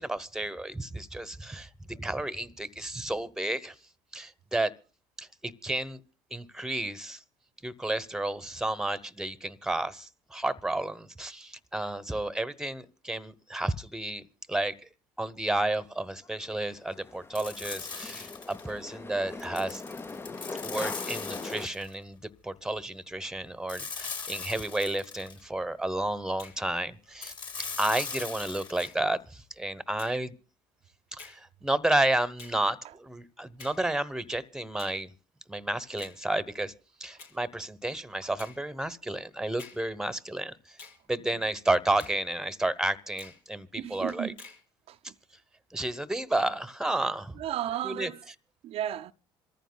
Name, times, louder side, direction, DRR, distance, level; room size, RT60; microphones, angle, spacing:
voice 1, 0.0-3.7 4.1-4.7 5.2-6.0 6.3-7.2 7.6-14.2 14.5-14.7 15.2-19.8 20.6-27.3 27.8-30.3 31.1-35.1 35.5-36.7 37.0-40.8 41.1-44.3 45.7-47.4 47.8-48.1, right 1 dB, 5° right, 1.0 m, -31 dB
sound 1, 16.2-21.7, left 3 dB, 20° left, 0.6 m, -41 dB
sound 2, 17.3-18.7 19.4-21.9 23.7-25.4 27.2-28.9, left 5 dB, 40° left, 3.9 m, -39 dB
Finger snapping, 26.4-26.6 27.6-27.8 28.8-29.0 30.0-30.2 31.2-31.4 32.4-32.6 33.6-33.8 34.8-35.0 36.0-36.2 37.2-37.4 38.4-38.6 39.6-39.8 40.8-41.0 42.0-42.2 43.2-43.4 44.4-44.6, left 4 dB, 80° left, 3.9 m, -48 dB
voice 2, 43.8-44.4 44.9-45.1 47.4-48.2 48.6-49.1, right 11 dB, 60° right, 0.6 m, -34 dB
27.0 x 14.5 x 2.2 m
hypercardioid pair, 70°, 12 cm